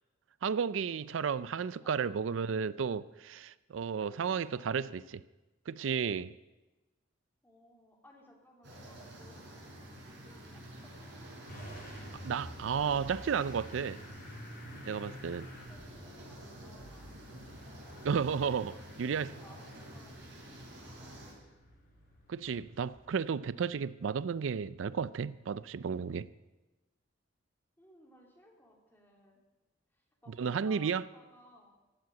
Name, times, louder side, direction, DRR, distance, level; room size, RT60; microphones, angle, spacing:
voice 1, 0.4-5.0 5.7-6.3 12.2-14.0 14.9-15.5 18.0-18.7 19.0-19.3 22.3-26.3 30.4-31.0, right 6 dB, 90° right, 0.4 m, -33 dB
voice 2, 1.8-2.1 4.0-4.9 7.4-11.0 15.5-17.3 18.4-20.6 20.8-21.4 27.8-29.4 29.9-31.7, left 1 dB, 10° left, 3.0 m, -60 dB
sound 1, 8.6-21.3, right 1 dB, 65° right, 5.1 m, -49 dB
Motor vehicle (road) / Engine starting, 11.5-23.1, equal, 50° left, 5.3 m, -51 dB
15.5 x 7.7 x 9.3 m
head